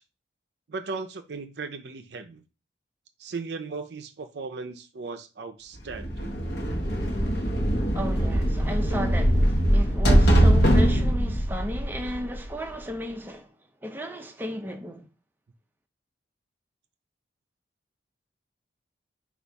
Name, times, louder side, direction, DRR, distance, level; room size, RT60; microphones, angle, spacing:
voice 1, 0.7-2.4 3.2-6.3, right 4 dB, 60° right, 0.5 m, -37 dB
sound 1, 5.9-12.7, equal, 60° left, 0.8 m, -22 dB
voice 2, 7.9-13.5 13.8-15.0, equal, 10° right, 0.5 m, -34 dB
4.0 x 2.4 x 4.5 m
head